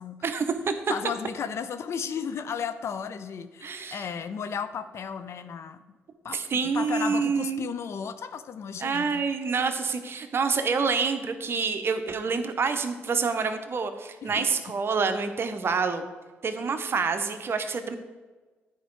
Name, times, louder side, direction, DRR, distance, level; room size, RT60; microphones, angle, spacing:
voice 1, 0.2-0.7 3.6-4.0 6.3-7.6 8.8-16.1 16.4-18.0, right 5 dB, 50° right, 8 dB, 0.8 m, -27 dB
voice 2, 0.9-5.8 6.2-6.4 6.6-9.2 14.2-14.5, left 7 dB, 60° left, 11 dB, 0.5 m, -34 dB
9.3 x 4.6 x 4.6 m, 1.3 s
supercardioid pair, 55°, 5 cm